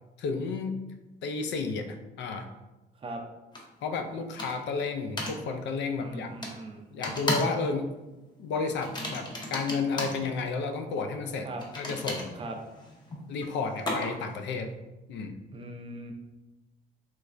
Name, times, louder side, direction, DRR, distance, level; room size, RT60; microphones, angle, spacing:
voice 1, 0.2-0.8 1.2-2.5 3.8-6.3 6.9-7.9 8.4-11.5 11.8-12.4 13.3-14.7 15.1-15.4, left 4 dB, 75° left, 6 dB, 0.4 m, -32 dB
sound 1, 3.5-3.6 4.4-4.7 5.2-5.4 6.4-6.6 7.0-7.6 7.9-8.1 8.8-10.2 11.6-14.3, left 1 dB, 25° left, 0.6 m, -34 dB
voice 2, 6.0-6.8 11.4-11.6 12.4-12.6 15.5-16.1, right 2 dB, 30° right, 3 dB, 0.4 m, -39 dB
3.2 x 3.2 x 2.4 m, 1.0 s
cardioid pair, 125°, 19 cm